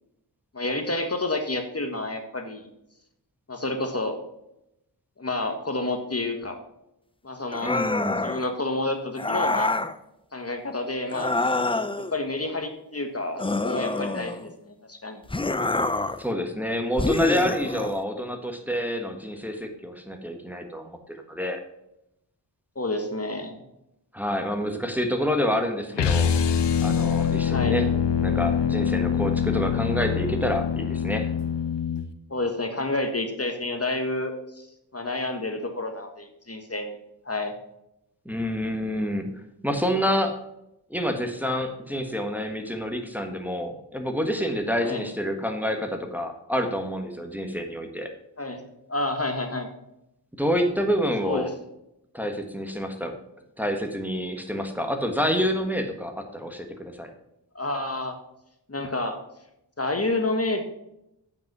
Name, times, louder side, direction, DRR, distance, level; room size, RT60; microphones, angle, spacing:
voice 1, 0.5-2.6 3.5-4.2 5.2-6.6 7.2-7.7 8.2-9.7 10.3-11.3 12.0-15.2 22.7-23.6 27.5-27.9 32.3-34.7 34.9-37.0 37.2-37.5 44.8-45.0 48.4-48.6 48.9-49.7 51.2-51.5 57.5-58.2 58.7-59.2 59.8-60.8, left 2 dB, 35° left, 6 dB, 1.4 m, -29 dB
sound 1, 7.5-8.4 9.2-9.9 11.1-12.1 13.4-14.5 15.3-16.2 17.0-18.0, left 2 dB, 15° left, 0.6 m, -26 dB
voice 2, 7.6-8.2 16.2-21.6 24.1-26.3 26.8-27.9 28.2-31.3 38.2-39.3 39.6-40.4 40.9-48.1 50.4-51.5 52.1-53.2 53.6-57.1, equal, 5° right, 4 dB, 1.4 m, -28 dB
sound 2, 25.9-32.1, left 7 dB, 75° left, 0.7 m, -24 dB
8.9 x 5.5 x 6.0 m, 0.85 s
cardioid pair, 45°, 42 cm